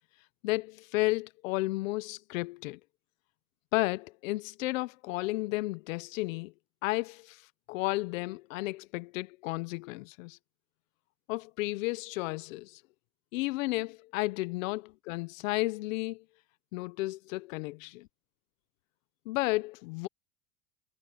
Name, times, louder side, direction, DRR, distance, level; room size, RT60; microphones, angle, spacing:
voice 1, 0.4-2.8 3.7-6.5 6.8-7.4 7.7-10.4 11.3-12.8 13.3-16.2 16.7-18.1 19.3-20.1, left 21 dB, 75° left, 0.8 m, -33 dB
supercardioid pair, 170°, 39 cm